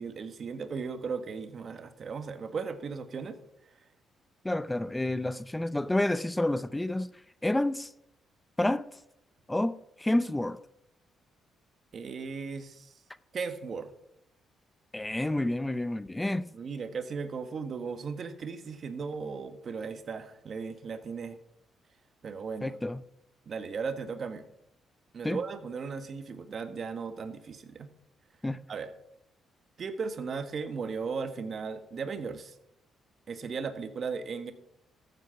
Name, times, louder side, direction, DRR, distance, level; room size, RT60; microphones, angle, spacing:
voice 1, 0.0-3.4 3.6-3.7 11.9-12.9 13.3-13.9 16.5-21.4 22.2-22.7 23.5-24.4 25.1-27.9 28.7-28.9 29.8-32.5 33.3-34.5, right 5 dB, 50° right, 1.4 m, -36 dB
voice 2, 4.4-7.1 7.4-7.9 8.6-8.9 9.5-10.6 14.9-16.5 22.6-23.0 25.2-25.4 28.4-28.6, left 1 dB, 10° left, 0.5 m, -29 dB
14.5 x 7.9 x 5.8 m
cardioid pair, 90°, 0 cm